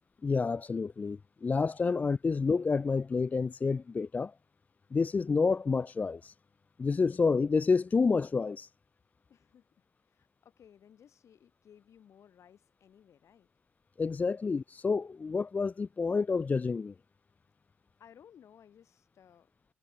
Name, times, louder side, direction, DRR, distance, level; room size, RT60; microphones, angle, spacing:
voice 1, 0.2-4.3 4.9-6.3 6.8-8.7 14.0-16.9, left 4 dB, 25° left, 0.3 m, -29 dB
voice 2, 9.3-13.5 18.0-19.5, left 9 dB, 50° left, 2.0 m, -59 dB
figure-of-eight pair, 45°, 6 cm